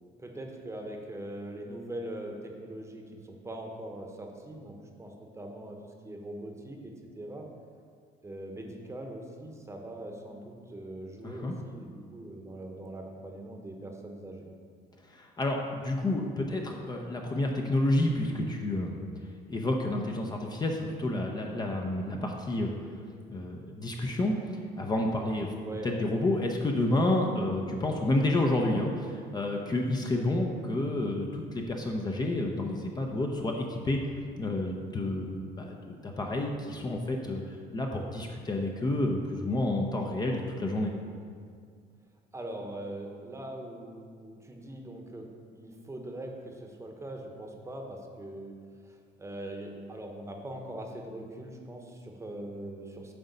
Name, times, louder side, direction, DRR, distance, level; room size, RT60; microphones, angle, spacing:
voice 1, 0.2-5.8 6.0-7.5 8.2-14.5 25.6-25.9 42.3-45.3 45.5-48.5 48.9-53.1, right 1 dB, 15° right, 2 dB, 1.0 m, -41 dB
voice 2, 11.2-11.5 15.0-19.0 19.5-22.7 23.3-24.3 24.8-25.5 25.8-34.0 34.4-40.9, left 1 dB, 25° left, 1 dB, 0.7 m, -30 dB
7.8 x 3.9 x 5.4 m, 2.1 s
cardioid pair, 95°, 17 cm